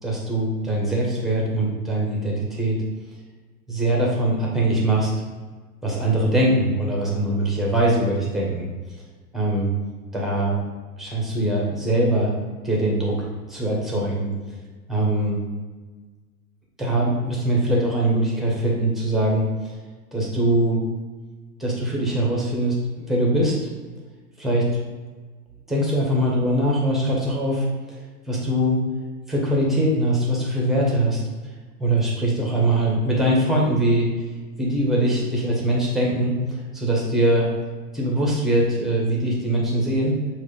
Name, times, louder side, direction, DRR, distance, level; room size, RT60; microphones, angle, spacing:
voice 1, 0.0-2.8 3.7-5.1 5.8-8.7 9.3-9.7 10.1-10.6 11.0-12.3 12.6-13.2 13.5-14.3 14.9-15.4 16.8-19.7 20.1-20.8 21.6-23.6 24.4-24.7 25.7-27.7 28.3-28.8 29.3-31.2 31.8-34.1 34.6-37.5 37.9-40.2, right 1 dB, ahead, -3 dB, 1.4 m, -22 dB
6.8 x 3.1 x 5.3 m, 1.4 s
figure-of-eight pair, 100°, 48 cm